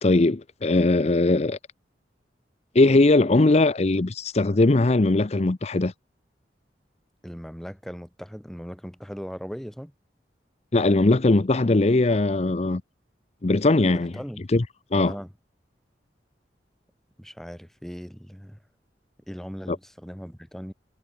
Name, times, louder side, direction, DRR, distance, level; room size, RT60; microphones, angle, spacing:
voice 1, 0.0-1.6 2.7-5.9 10.7-12.8 13.4-14.1 14.5-14.6 14.9-15.1 19.7-19.8, left 2 dB, 35° left, 0.6 m, -20 dB
voice 2, 7.2-9.9 13.9-14.4 14.9-15.3 17.2-18.6 19.3-20.7, equal, ahead, 5.0 m, -38 dB
head